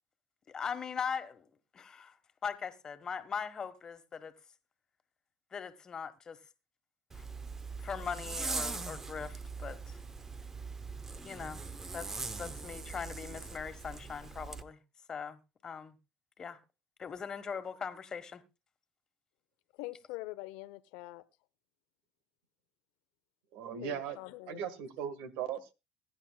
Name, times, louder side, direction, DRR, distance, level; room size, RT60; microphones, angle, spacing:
voice 1, 0.5-1.4 1.7-2.1 2.4-4.3 5.5-6.4 7.1-7.2 7.8-10.0 11.2-11.6 11.9-14.8 15.1-16.0 16.4-16.6 17.0-18.4, left 6 dB, 35° left, 1.4 m, -40 dB
Zipper (clothing), 7.1-14.6, right 4 dB, 20° right, 0.9 m, -41 dB
voice 2, 19.7-21.2 23.8-24.6, left 19 dB, 85° left, 0.7 m, -44 dB
voice 3, 23.5-24.2 24.5-25.7, right 8 dB, 80° right, 1.5 m, -38 dB
21.0 x 10.0 x 2.3 m
cardioid pair, 110°, 2 cm